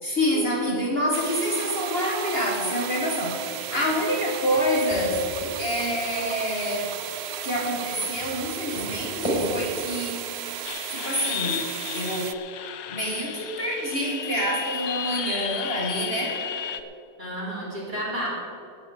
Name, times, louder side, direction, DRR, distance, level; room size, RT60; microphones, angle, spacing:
voice 1, 0.0-5.3 5.6-7.0 7.4-10.3 10.9-11.7 11.9-12.3 12.9-16.4 18.2-18.3, equal, 40° left, -1 dB, 1.8 m, -27 dB
sound 1, 1.1-12.3, right 10 dB, 65° right, 0.6 m, -35 dB
sound 2, 3.3-5.6 6.0-9.8, equal, 20° left, 4.5 m, -35 dB
sound 3, 10.6-16.8, left 9 dB, 75° left, 1.2 m, -33 dB
voice 2, 17.2-18.3, equal, 30° right, -6 dB, 4.0 m, -32 dB
18.5 x 6.6 x 7.5 m, 2.7 s
omnidirectional pair, 1.6 m